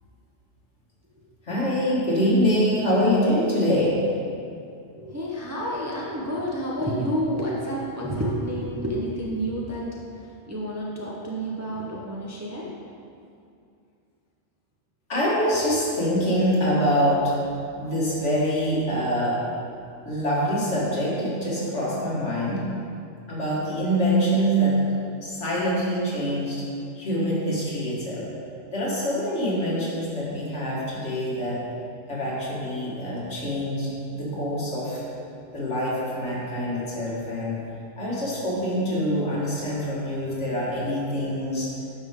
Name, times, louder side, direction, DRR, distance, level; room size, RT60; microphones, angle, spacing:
voice 1, 1.4-4.0 15.1-17.3 17.8-19.4 20.0-22.7 23.3-24.8 25.2-26.6 27.0-28.2 28.7-31.6 32.1-35.0 35.5-37.6 38.0-41.7, equal, 60° left, -7 dB, 2.1 m, -25 dB
voice 2, 5.0-10.1 10.5-12.7, equal, 15° right, -5 dB, 0.7 m, -29 dB
9.6 x 5.5 x 3.7 m, 2.5 s
omnidirectional pair, 1.4 m